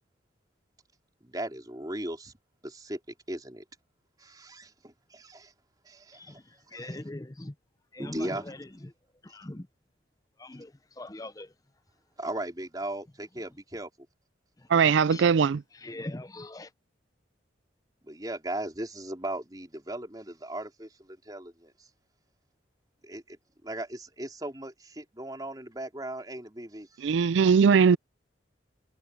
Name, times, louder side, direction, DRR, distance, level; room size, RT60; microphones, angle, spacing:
voice 1, 1.2-2.3 2.6-3.6 4.2-5.5 5.8-7.0 8.0-8.5 9.3-9.4 12.2-14.1 18.0-21.9 23.0-27.3, right 1 dB, 20° right, 4.4 m, -38 dB
voice 2, 6.1-7.5 7.9-8.9 9.2-9.7 10.4-11.5 14.6-14.7 15.1-15.2 15.7-16.7, left 1 dB, 20° left, 0.7 m, -41 dB
voice 3, 14.7-15.6 27.0-28.0, right 6 dB, 75° right, 0.4 m, -20 dB
head